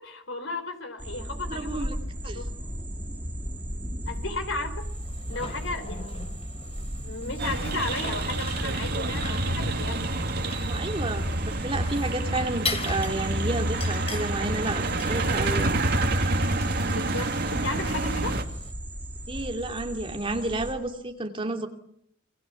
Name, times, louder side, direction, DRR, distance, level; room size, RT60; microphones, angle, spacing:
voice 1, 0.0-1.9 2.2-2.5 4.1-4.9 5.3-6.2 7.0-10.3 16.9-18.4, left 3 dB, 75° left, 9 dB, 4.2 m, -34 dB
sound 1, 1.0-20.7, equal, 10° right, 3.8 m, -37 dB
voice 2, 1.5-2.0 2.2-2.4 10.6-15.8 19.3-21.7, right 2 dB, 30° right, 3 dB, 2.9 m, -31 dB
sound 2, 4.8-18.7, left 4 dB, 30° left, 3.3 m, -41 dB
sound 3, 7.4-18.4, right 2 dB, 55° right, 2.5 m, -28 dB
28.5 x 25.0 x 7.2 m, 0.72 s
head